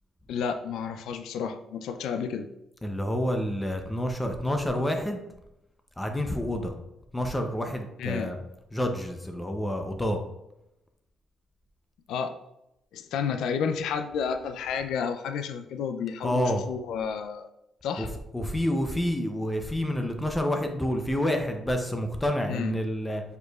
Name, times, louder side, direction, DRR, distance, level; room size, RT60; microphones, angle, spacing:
voice 1, 0.3-2.5 8.0-8.3 12.1-12.4 12.9-17.5 17.8-18.1 22.5-22.7, left 6 dB, 80° left, 8 dB, 0.3 m, -31 dB
voice 2, 2.8-5.2 6.0-6.7 7.1-8.4 8.7-10.2 16.2-16.6 18.0-18.1 18.3-23.2, equal, 10° left, 5 dB, 0.6 m, -28 dB
4.8 x 4.4 x 2.3 m, 0.86 s
cardioid pair, 90°, 0 cm